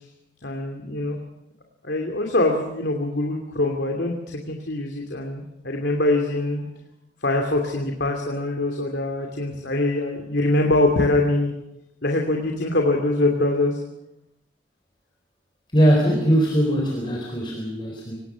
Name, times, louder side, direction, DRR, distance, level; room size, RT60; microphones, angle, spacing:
voice 1, 0.4-1.2 1.8-6.7 7.2-11.5 12.0-13.8, left 2 dB, 75° left, 2 dB, 2.8 m, -23 dB
voice 2, 15.7-18.2, equal, 25° left, -1 dB, 4.1 m, -20 dB
25.0 x 19.5 x 6.3 m, 0.85 s
head